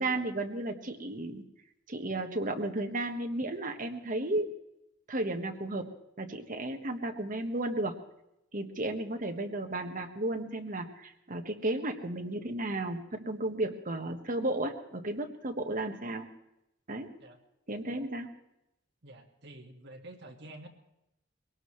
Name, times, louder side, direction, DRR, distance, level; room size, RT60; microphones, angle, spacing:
voice 1, 0.0-1.4 1.9-4.5 5.1-5.9 6.2-8.0 8.5-16.3 16.9-17.1 17.7-18.3, right 2 dB, 45° right, 4 dB, 1.4 m, -33 dB
voice 2, 19.0-20.7, right 1 dB, 60° right, 3 dB, 1.9 m, -49 dB
22.0 x 18.0 x 3.2 m, 0.86 s
head